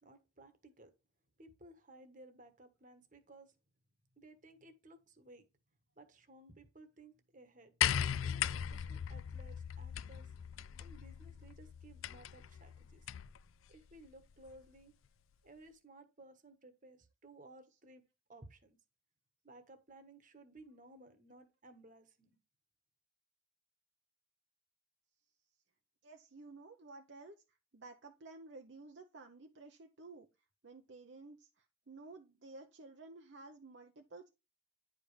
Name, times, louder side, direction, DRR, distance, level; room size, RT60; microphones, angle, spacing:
voice 1, 0.0-0.9 1.4-3.5 4.2-5.4 6.0-7.7 8.2-10.3 10.8-13.0 13.7-14.9 15.4-18.0 18.3-18.8 19.4-22.3, right 2 dB, 40° right, 1.3 m, -58 dB
sound 1, 7.8-13.4 14.5-14.6, left 9 dB, 85° left, 0.4 m, -38 dB
voice 2, 26.0-27.3 27.7-30.3 30.6-34.3, right 3 dB, 60° right, 0.7 m, -53 dB
9.9 x 5.1 x 3.3 m
head